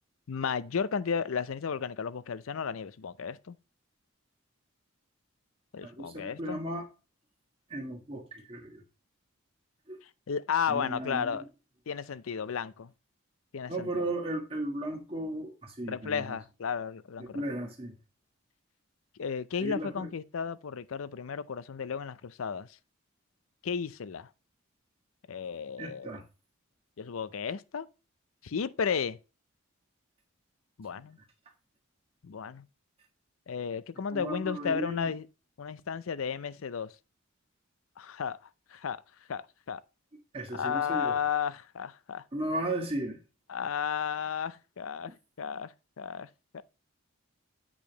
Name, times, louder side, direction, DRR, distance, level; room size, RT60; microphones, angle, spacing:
voice 1, 0.3-3.6 5.7-6.6 10.0-11.4 11.9-12.9 13.5-14.0 15.9-17.4 19.2-22.7 23.6-24.3 25.3-26.2 27.0-27.9 28.4-29.2 30.8-31.2 32.2-32.7 33.5-35.3 35.6-36.9 38.0-38.4 38.7-39.0 39.3-39.8 40.5-42.2 43.5-46.3 46.5-46.6, left 6 dB, 75° left, 0.5 m, -33 dB
voice 2, 5.8-6.9 7.7-8.8 9.9-10.0 10.7-11.4 13.7-16.4 17.2-17.9 19.6-20.1 25.8-26.2 34.1-35.1 40.3-41.1 42.3-43.2, right 1 dB, 25° right, 1.4 m, -35 dB
8.5 x 5.1 x 2.9 m
head